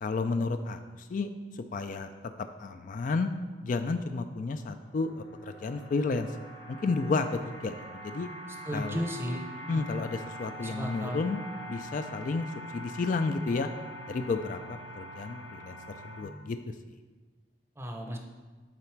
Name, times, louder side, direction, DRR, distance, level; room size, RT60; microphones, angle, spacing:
voice 1, 0.0-2.1 2.4-3.3 3.6-6.3 6.7-8.3 8.7-9.0 9.7-11.4 11.7-12.5 12.7-13.7 14.1-15.8 16.0-16.6, left 3 dB, 45° left, 8 dB, 0.3 m, -31 dB
sound 1, 4.2-16.2, right 1 dB, 85° left, 1.1 m, -45 dB
voice 2, 8.6-9.9 10.6-11.2 17.8-18.2, equal, 15° right, 3 dB, 0.7 m, -34 dB
8.8 x 4.0 x 4.5 m, 1.4 s
head